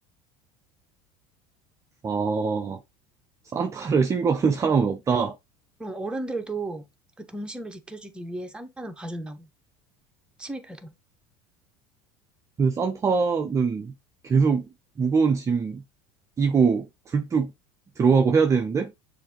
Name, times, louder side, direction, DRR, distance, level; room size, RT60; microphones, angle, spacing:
voice 1, 2.0-2.8 3.5-5.4 12.6-13.9 14.2-14.7 15.0-15.8 16.4-17.5 18.0-18.9, right 5 dB, 20° right, 0.4 m, -22 dB
voice 2, 5.8-6.8 7.2-9.5 10.4-10.9, right 2 dB, 5° right, 0.8 m, -34 dB
6.5 x 2.6 x 2.9 m
supercardioid pair, 115°, 14 cm